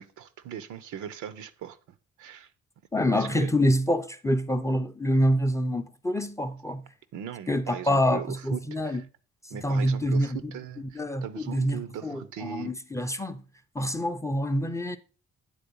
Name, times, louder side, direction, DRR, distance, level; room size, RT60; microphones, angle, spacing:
voice 1, 0.0-1.8 2.2-2.5 3.1-3.5 7.1-9.1 9.5-12.7, right 9 dB, 80° right, 0.7 m, -39 dB
voice 2, 2.9-6.8 7.5-9.0 9.5-10.5 10.9-13.4 13.7-15.0, equal, 10° left, 0.5 m, -26 dB
9.0 x 3.9 x 5.3 m
cardioid pair, 90°, 30 cm